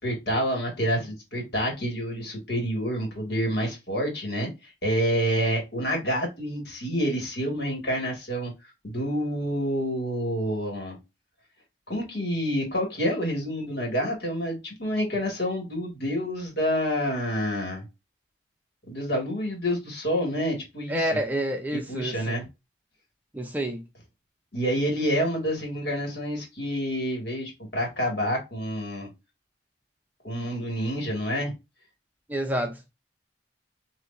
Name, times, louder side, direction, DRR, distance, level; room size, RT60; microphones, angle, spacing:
voice 1, 0.0-8.5 8.8-11.0 11.9-17.8 18.9-21.1 21.7-22.5 24.5-29.1 30.2-31.5, equal, 60° left, 2.1 m, -28 dB
voice 2, 20.9-22.4 23.3-23.8 32.3-32.9, right 1 dB, 10° right, 0.6 m, -28 dB
6.5 x 2.8 x 2.6 m
head